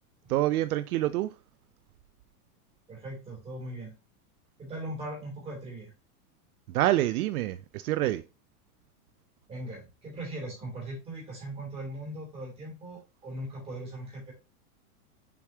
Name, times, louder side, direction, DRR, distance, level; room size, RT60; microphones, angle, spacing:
voice 1, 0.3-1.4 6.7-8.2, right 15 dB, 75° right, 0.6 m, -27 dB
voice 2, 2.9-4.0 4.6-5.9 9.5-14.3, right 1 dB, 15° right, 3.0 m, -39 dB
7.1 x 4.8 x 2.9 m
supercardioid pair, 175°, 45 cm